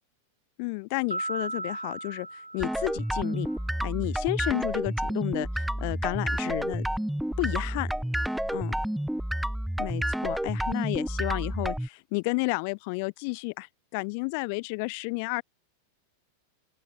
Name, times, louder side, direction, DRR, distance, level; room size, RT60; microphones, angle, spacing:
voice 1, 0.6-3.5 3.8-6.9 7.4-7.9 8.5-8.8 9.8-15.4, left 32 dB, 45° left, 0.5 m, -31 dB
sound 1, 1.1-3.6, right 1 dB, 85° right, 1.1 m, -37 dB
sound 2, 2.6-11.9, equal, ahead, 1.0 m, -30 dB
sound 3, 7.4-9.0, right 9 dB, 25° right, 7.0 m, -57 dB
open air
figure-of-eight pair, 90°, 0 cm